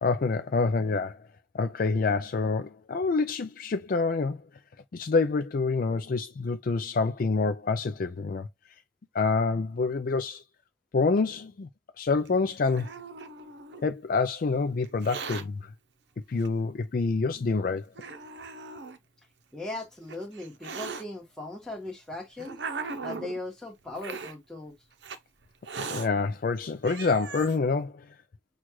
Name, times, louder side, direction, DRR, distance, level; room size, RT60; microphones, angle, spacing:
voice 1, 0.0-1.2 1.5-4.4 4.9-8.5 9.1-10.4 10.9-11.7 12.0-12.9 13.8-15.7 16.3-17.9 25.8-28.1, left 4 dB, 45° left, 0.4 m, -27 dB
Hiss, 12.3-13.9 14.8-15.4 16.4-16.5 17.3-17.4 18.0-19.0 19.8-21.0 21.9-23.4 24.0-24.3 25.0-25.2 25.6-26.1 26.6-26.7 26.8-27.6, right 4 dB, 60° right, 0.7 m, -39 dB
voice 2, 19.5-22.6 23.0-24.7, left 2 dB, 5° left, 1.3 m, -38 dB
6.1 x 2.4 x 3.0 m
head